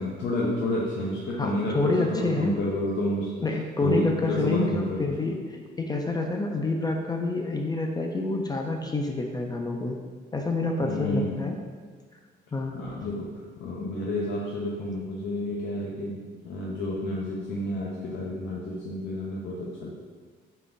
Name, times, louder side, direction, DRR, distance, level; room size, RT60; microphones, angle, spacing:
voice 1, 0.0-3.3 3.8-5.2 10.8-11.4 12.7-13.3 13.6-19.9, left 1 dB, 70° left, -4 dB, 0.5 m, -30 dB
voice 2, 1.4-2.6 3.4-5.4 5.8-10.0 10.3-11.6 12.5-12.8, left 2 dB, 20° left, 2 dB, 0.3 m, -27 dB
3.7 x 3.3 x 2.6 m, 1.5 s
cardioid pair, 90°, 20 cm